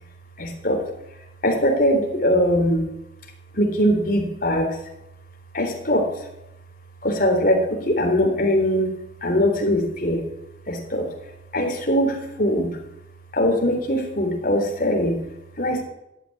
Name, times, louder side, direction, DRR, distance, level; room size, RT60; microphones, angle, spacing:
voice 1, 0.4-0.8 1.4-2.9 3.5-4.8 5.5-6.1 7.0-10.2 10.7-11.0 11.5-12.7 13.3-15.2 15.6-15.8, equal, 45° left, 2 dB, 3.7 m, -21 dB
14.0 x 9.5 x 9.9 m, 0.88 s
head